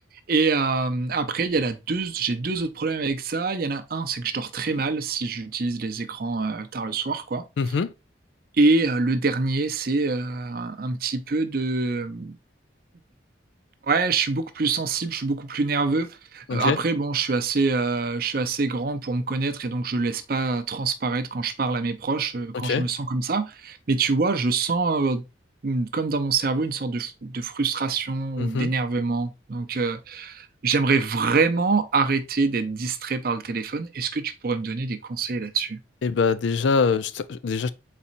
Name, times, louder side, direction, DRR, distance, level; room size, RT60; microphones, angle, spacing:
voice 1, 0.3-7.4 8.5-12.4 13.8-25.2 25.6-35.8, right 4 dB, 50° right, 0.5 m, -25 dB
voice 2, 7.6-7.9 16.5-16.8 22.6-22.9 28.4-28.7 36.0-37.7, left 5 dB, 75° left, 0.4 m, -23 dB
4.1 x 4.1 x 2.5 m
head